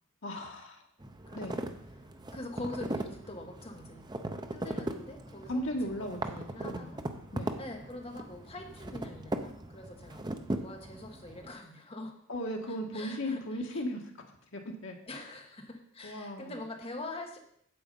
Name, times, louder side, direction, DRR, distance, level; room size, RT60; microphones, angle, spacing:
voice 1, 0.2-0.9 1.3-1.6 5.5-6.9 7.3-7.6 12.3-15.0 16.0-16.5, equal, 65° left, 1 dB, 1.4 m, -37 dB
sound 1, 1.0-11.5, right 1 dB, 20° right, 0.7 m, -39 dB
voice 2, 1.3-1.6 2.0-2.1 2.3-4.1 4.5-7.0 7.6-10.3 10.5-12.1 12.7-13.8 15.1-17.4, left 2 dB, 30° left, 3 dB, 1.3 m, -44 dB
8.7 x 7.8 x 5.4 m, 0.68 s
head